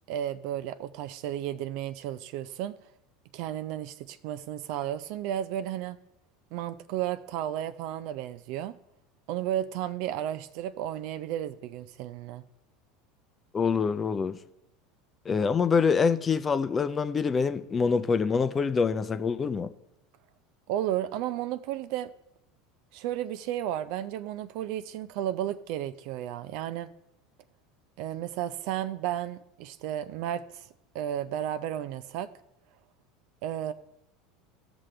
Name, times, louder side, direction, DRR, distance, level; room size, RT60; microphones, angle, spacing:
voice 1, 0.1-2.7 3.3-6.0 6.5-8.8 9.3-12.4 20.7-22.1 22.9-26.9 28.0-30.5 30.9-32.3 33.4-33.7, right 11 dB, 60° right, 0.5 m, -33 dB
voice 2, 13.5-14.4 15.2-19.7, left 5 dB, 25° left, 0.6 m, -25 dB
16.5 x 6.2 x 3.3 m
hypercardioid pair, 80°, 0 cm